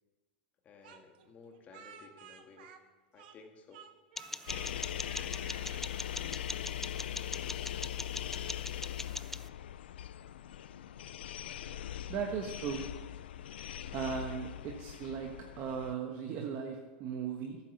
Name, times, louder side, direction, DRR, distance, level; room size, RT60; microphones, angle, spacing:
voice 1, 0.6-2.7 3.1-3.8 10.2-10.3, left 4 dB, 30° left, 3 dB, 1.8 m, -56 dB
Speech, 0.8-3.5 3.7-4.7 5.0-5.8, right 7 dB, 65° right, 1.3 m, -53 dB
sound 1, 4.2-9.5, left 2 dB, 5° left, 0.3 m, -42 dB
sound 2, 4.5-15.9, left 11 dB, 85° left, 0.5 m, -41 dB
voice 2, 12.1-12.9 13.9-17.6, right 7 dB, 40° right, 2 dB, 1.4 m, -37 dB
11.5 x 9.0 x 6.7 m, 1.2 s
supercardioid pair, 135°, 5 cm